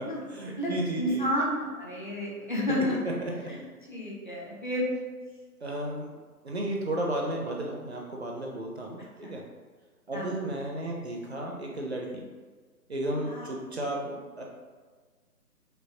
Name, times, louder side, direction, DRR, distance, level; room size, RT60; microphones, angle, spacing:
voice 1, 0.0-1.3 3.2-3.5 5.6-6.1 6.4-9.4 10.1-12.2 12.9-14.4, right 1 dB, 45° right, -1 dB, 0.5 m, -33 dB
voice 2, 0.6-3.0 3.5-3.6 3.9-4.9 9.2-9.3 10.1-10.2 13.2-13.5, equal, 35° left, -5 dB, 0.6 m, -30 dB
5.2 x 2.0 x 2.8 m, 1.5 s
figure-of-eight pair, 155°, 47 cm